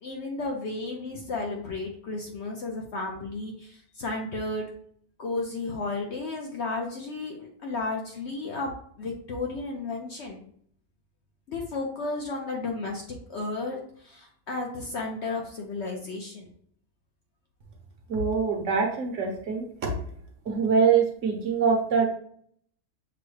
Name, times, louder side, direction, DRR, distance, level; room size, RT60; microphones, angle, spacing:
voice 1, 0.0-4.7 5.2-8.7 9.0-10.4 11.5-16.5, left 3 dB, 60° left, 0 dB, 0.8 m, -33 dB
voice 2, 18.1-19.9 20.5-22.0, right 5 dB, 60° right, 1 dB, 1.0 m, -24 dB
6.1 x 2.1 x 3.1 m, 0.62 s
omnidirectional pair, 1.6 m